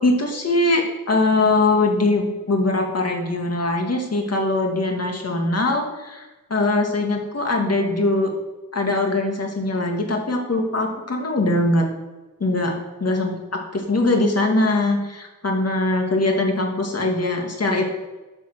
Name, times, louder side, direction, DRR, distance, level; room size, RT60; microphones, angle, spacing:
voice 1, 0.0-8.3 8.7-11.9 12.4-17.8, left 2 dB, 50° left, 2 dB, 1.9 m, -22 dB
9.2 x 5.5 x 6.6 m, 1.1 s
wide cardioid pair, 125°, 33 cm